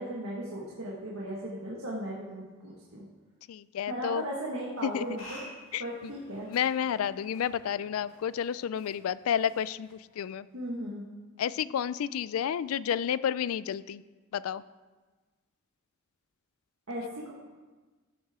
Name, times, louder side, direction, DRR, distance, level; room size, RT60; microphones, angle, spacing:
voice 1, 0.0-3.0 3.9-5.4 5.8-6.5 10.5-11.0 16.9-17.3, right 1 dB, 80° right, -4 dB, 1.7 m, -37 dB
voice 2, 3.5-4.2 4.8-5.0 5.7-6.1 6.4-10.5 11.4-14.0 14.3-14.6, left 8 dB, 85° left, 17 dB, 0.3 m, -31 dB
sound 1, 4.8-10.4, left 1 dB, 65° left, 2.9 m, -52 dB
14.5 x 7.2 x 3.7 m, 1.3 s
head